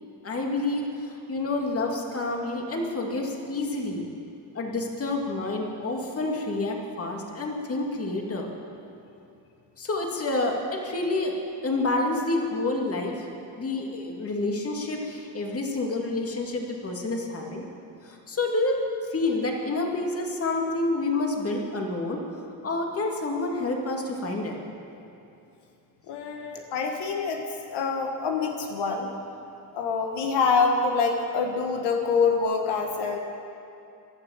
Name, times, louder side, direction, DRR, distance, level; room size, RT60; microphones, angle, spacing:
voice 1, 0.2-4.0 4.5-8.5 9.8-11.4 11.6-13.3 13.6-17.6 18.0-18.8 19.1-24.6, left 2 dB, 35° left, 1 dB, 2.4 m, -28 dB
voice 2, 26.1-27.4 27.7-29.1 29.7-33.2, left 5 dB, 80° left, 3 dB, 1.5 m, -25 dB
16.5 x 11.5 x 7.3 m, 2.7 s
cardioid pair, 110°, 40 cm